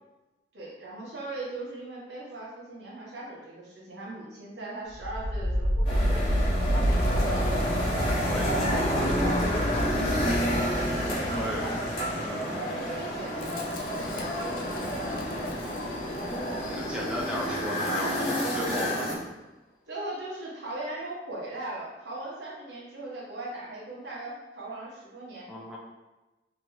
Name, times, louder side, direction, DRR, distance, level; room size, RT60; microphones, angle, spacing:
voice 1, 0.5-6.6 6.8-7.5 8.9-11.8 12.0-14.5 15.9-16.0 19.9-25.5, right 2 dB, 80° right, -6 dB, 1.0 m, -39 dB
Wind, 4.9-17.9, equal, 50° left, 0.4 m, -31 dB
sound 1, 5.8-19.1, equal, 30° left, 0.9 m, -30 dB
voice 2, 8.1-8.9 11.0-11.7 12.2-12.6 14.8-15.1 16.3-19.1 25.5-25.8, equal, 5° right, -4 dB, 0.5 m, -36 dB
2.9 x 2.5 x 3.1 m, 1.1 s
head